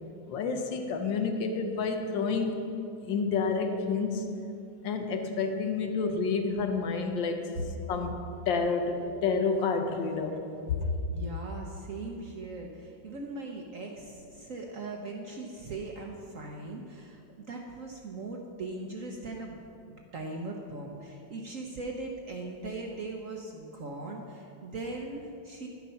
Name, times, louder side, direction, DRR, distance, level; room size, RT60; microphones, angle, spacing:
voice 1, 0.3-2.6 3.0-4.3 4.8-7.5 7.9-8.2 8.5-10.4 10.7-10.8, left 4 dB, 75° left, 5 dB, 1.6 m, -29 dB
voice 2, 11.1-19.6 19.8-25.7, right 2 dB, 55° right, 1 dB, 0.9 m, -40 dB
10.5 x 8.3 x 5.6 m, 2.6 s
omnidirectional pair, 2.1 m